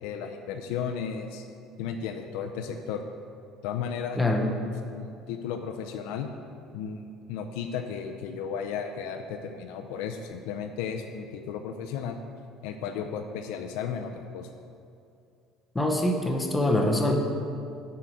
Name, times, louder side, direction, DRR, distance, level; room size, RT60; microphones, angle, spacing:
voice 1, 0.0-1.5 1.8-3.0 3.6-6.3 6.7-12.2 12.6-14.5, left 7 dB, 85° left, 4 dB, 0.6 m, -34 dB
voice 2, 4.2-4.5 15.7-17.2, left 1 dB, 10° left, 1 dB, 0.9 m, -24 dB
7.6 x 5.6 x 7.6 m, 2.5 s
cardioid pair, 150°, 0 cm